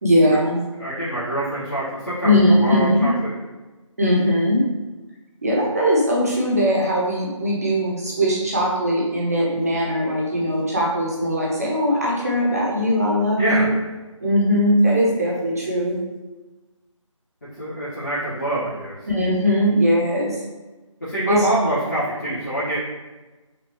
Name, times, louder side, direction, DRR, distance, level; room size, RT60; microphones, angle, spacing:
voice 1, 0.0-0.6 2.2-3.1 4.0-4.6 5.4-13.7 14.2-16.0 19.1-20.4 21.3-21.5, equal, 30° right, -3 dB, 1.0 m, -20 dB
voice 2, 0.8-2.3 2.6-3.3 13.4-13.7 17.6-19.0 21.0-22.8, right 1 dB, 35° left, -12 dB, 1.3 m, -25 dB
6.0 x 2.6 x 3.0 m, 1.2 s
figure-of-eight pair, 160°, 17 cm